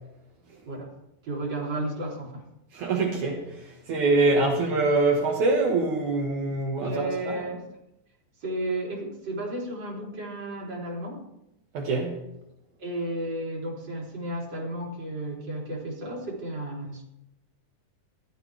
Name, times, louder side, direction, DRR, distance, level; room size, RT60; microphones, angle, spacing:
voice 1, 1.2-2.4 6.8-7.6 8.4-11.2 12.8-17.0, right 1 dB, 35° right, -3 dB, 3.9 m, -33 dB
voice 2, 2.7-7.4 11.7-12.2, right 3 dB, 65° right, -2 dB, 3.0 m, -24 dB
16.5 x 13.0 x 3.5 m, 0.87 s
omnidirectional pair, 3.8 m